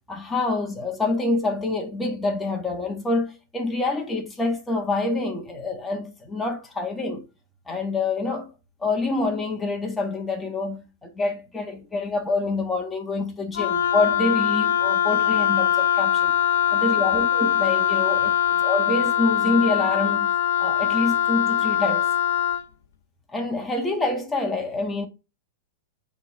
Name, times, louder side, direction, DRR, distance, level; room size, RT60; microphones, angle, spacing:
voice 1, 0.1-7.2 7.7-8.5 8.8-16.3 16.7-18.2 18.6-20.3 20.6-22.1 23.3-25.1, left 3 dB, 10° left, 1.6 m, -26 dB
Wind instrument woodwind instrument, 13.5-22.6, left 10 dB, 75° left, 0.6 m, -22 dB
7.9 x 3.5 x 3.6 m
hypercardioid pair, 130°, 0 cm